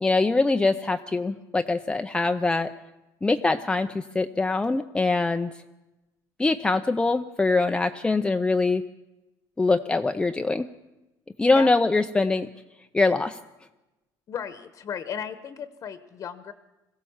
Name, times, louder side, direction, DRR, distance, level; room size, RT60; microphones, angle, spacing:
voice 1, 0.0-2.7 3.2-5.5 6.4-8.8 9.6-10.7 11.4-12.5 12.9-13.4, left 3 dB, 10° left, 7 dB, 0.6 m, -23 dB
voice 2, 14.3-16.5, left 8 dB, 45° left, 11 dB, 1.1 m, -35 dB
22.0 x 16.5 x 7.2 m, 1.0 s
cardioid pair, 130°, 8 cm